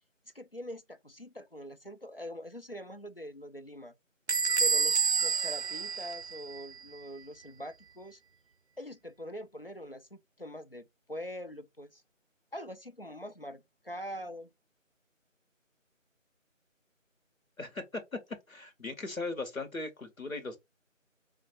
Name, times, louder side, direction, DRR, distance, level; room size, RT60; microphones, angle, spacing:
voice 1, 0.3-3.9 4.6-8.2 8.8-12.0 12.5-14.5, equal, 45° left, 0.5 m, -43 dB
Bell / Squeak, 4.3-6.8, right 5 dB, 55° right, 0.5 m, -29 dB
voice 2, 17.6-18.2 18.5-20.6, left 3 dB, 90° left, 1.8 m, -38 dB
3.5 x 3.2 x 3.4 m
figure-of-eight pair, 175°, 40 cm